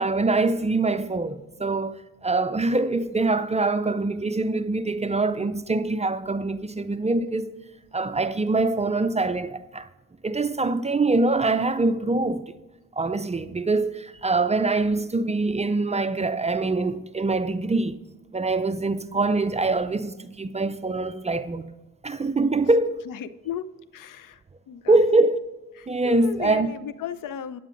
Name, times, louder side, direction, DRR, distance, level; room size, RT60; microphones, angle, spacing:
voice 1, 0.0-7.5 7.9-9.9 10.2-12.6 12.9-18.0 18.3-21.7 22.0-23.1 24.9-25.4 25.9-26.7, right 3 dB, 20° right, 0.4 m, -24 dB
voice 2, 23.1-23.7 23.9-25.0 25.8-27.6, left 9 dB, 70° left, 0.5 m, -35 dB
9.2 x 8.9 x 3.8 m
cardioid pair, 70°, 33 cm